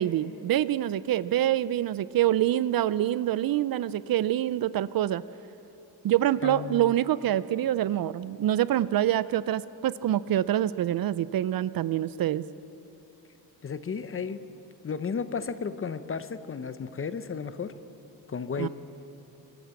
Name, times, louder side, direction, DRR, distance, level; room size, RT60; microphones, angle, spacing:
voice 1, 0.0-5.2 6.0-12.4 18.6-18.7, right 12 dB, 60° right, 17 dB, 0.5 m, -26 dB
voice 2, 6.4-6.9 13.6-14.4 14.8-17.7 18.3-18.7, left 6 dB, 30° left, 12 dB, 0.8 m, -33 dB
23.5 x 14.5 x 8.3 m, 2.9 s
cardioid pair, 130°, 41 cm